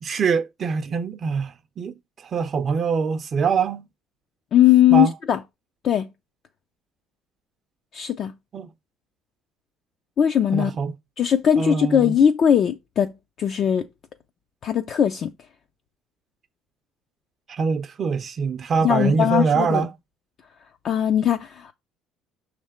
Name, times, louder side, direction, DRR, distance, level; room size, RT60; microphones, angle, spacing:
voice 1, 0.0-3.9 4.9-5.1 8.5-8.7 10.5-10.9 11.6-12.1 17.5-19.9, right 5 dB, 30° right, 0.5 m, -24 dB
voice 2, 4.5-5.4 5.8-6.1 7.9-8.3 10.2-10.7 11.2-13.1 13.4-13.8 14.6-15.3 18.8-19.8 20.8-21.7, left 9 dB, 40° left, 0.4 m, -19 dB
6.3 x 3.2 x 5.0 m
cardioid pair, 165°, 0 cm